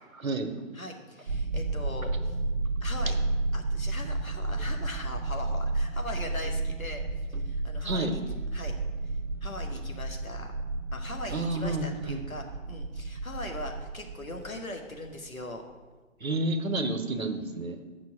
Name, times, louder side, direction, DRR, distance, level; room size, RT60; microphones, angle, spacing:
voice 1, 0.1-0.5 7.8-8.1 11.3-12.2 16.2-17.8, right 2 dB, 80° right, 7 dB, 1.2 m, -30 dB
voice 2, 0.7-2.3 2.8-3.2 3.5-7.0 7.4-8.2 8.5-8.7 9.0-9.1 9.4-10.5 10.9-15.6, left 2 dB, 80° left, 3 dB, 1.7 m, -40 dB
sound 1, 1.3-15.4, right 2 dB, 50° right, 0.6 m, -32 dB
7.2 x 5.9 x 7.4 m, 1.3 s
figure-of-eight pair, 140°, 41 cm